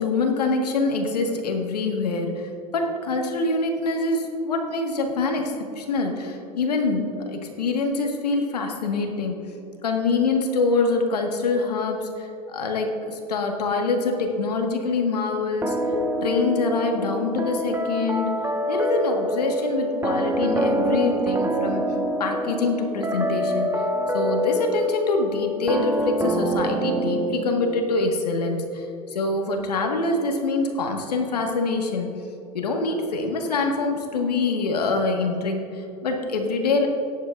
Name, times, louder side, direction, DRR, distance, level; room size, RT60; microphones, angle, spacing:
voice 1, 0.0-9.4 9.8-15.8 16.2-18.4 18.7-21.8 22.2-23.7 24.1-32.1 32.5-36.9, left 3 dB, 85° left, 3 dB, 1.6 m, -25 dB
sound 1, 15.6-28.0, right 1 dB, 15° right, 1.2 m, -26 dB
18.5 x 10.0 x 2.5 m, 2.8 s
hypercardioid pair, 90°, 20 cm